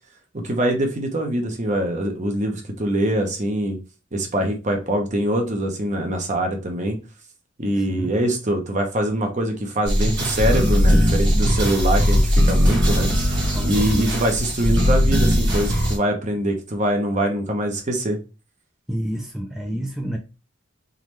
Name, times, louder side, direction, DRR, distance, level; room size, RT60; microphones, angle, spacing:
voice 1, 0.3-3.8 4.1-7.0 7.6-13.1 13.6-18.2, right 1 dB, 40° right, 3 dB, 0.9 m, -23 dB
voice 2, 7.8-8.1 13.5-14.3 18.9-20.2, equal, 5° right, 0 dB, 0.5 m, -29 dB
sound 1, 9.9-16.0, equal, 65° right, 1.3 m, -19 dB
3.8 x 3.1 x 3.1 m, 0.31 s
head